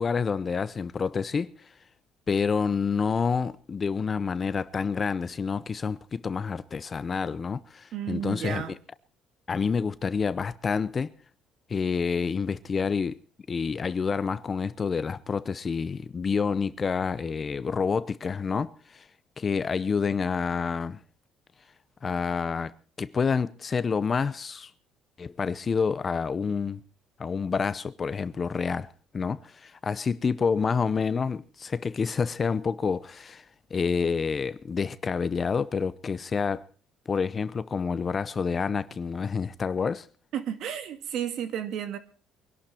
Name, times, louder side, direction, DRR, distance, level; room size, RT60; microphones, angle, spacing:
voice 1, 0.0-1.5 2.3-8.6 9.5-11.1 11.7-13.2 13.5-19.1 19.4-21.0 22.0-24.7 25.2-26.8 27.2-33.4 33.7-36.6 37.1-40.1, left 5 dB, 30° left, 0.7 m, -28 dB
voice 2, 7.9-8.7 40.3-42.0, right 9 dB, 60° right, 2.2 m, -32 dB
23.5 x 11.5 x 4.4 m
cardioid pair, 130°, 0 cm